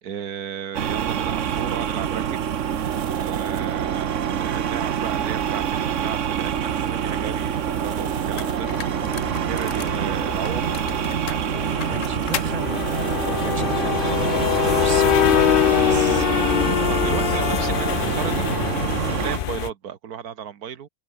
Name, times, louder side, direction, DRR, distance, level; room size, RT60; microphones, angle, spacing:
voice 1, 0.0-2.4 3.2-8.7 9.0-10.8 11.3-12.4 16.6-18.4 19.1-20.9, right 8 dB, 85° right, 1.7 m, -34 dB
sound 1, 0.7-19.4, right 9 dB, 60° right, 1.2 m, -26 dB
sound 2, 3.2-3.3 5.0-5.2 5.6-5.7 5.9-6.1 6.5-6.6 6.9-19.7, left 11 dB, 90° left, 0.4 m, -24 dB
sound 3, 7.7-7.8 8.4-10.0 10.4-12.6, left 9 dB, 60° left, 1.3 m, -35 dB
voice 2, 9.0-9.4 11.8-16.3, right 3 dB, 25° right, 2.4 m, -35 dB
omnidirectional pair, 1.5 m